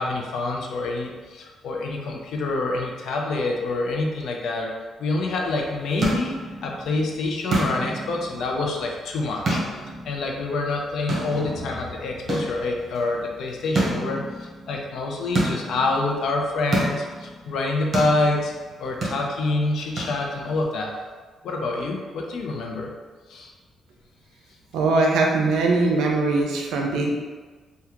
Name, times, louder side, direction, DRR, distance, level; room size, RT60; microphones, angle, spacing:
voice 1, 0.0-4.7 5.0-6.4 6.6-9.6 10.0-18.5 18.8-20.9 21.4-22.9 23.3-23.5, left 2 dB, 75° left, 0 dB, 0.5 m, -26 dB
sound 1, 5.5-20.6, right 1 dB, 45° right, 1.0 m, -31 dB
voice 2, 24.7-27.1, right 3 dB, 90° right, 1 dB, 0.5 m, -21 dB
3.5 x 2.3 x 2.9 m, 1.4 s
cardioid pair, 95°, 0 cm